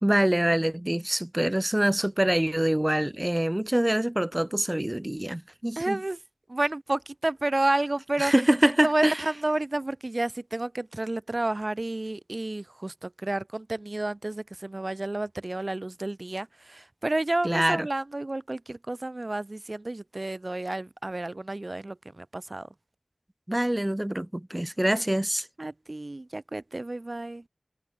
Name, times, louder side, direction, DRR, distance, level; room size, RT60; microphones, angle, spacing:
voice 1, 0.0-6.0 8.2-9.2 17.4-17.9 23.5-25.4, right 1 dB, 20° right, 3.3 m, -25 dB
voice 2, 5.8-6.2 6.5-8.3 8.6-22.7 25.6-27.4, right 2 dB, 55° right, 3.3 m, -30 dB
wide cardioid pair, 50°, 0 cm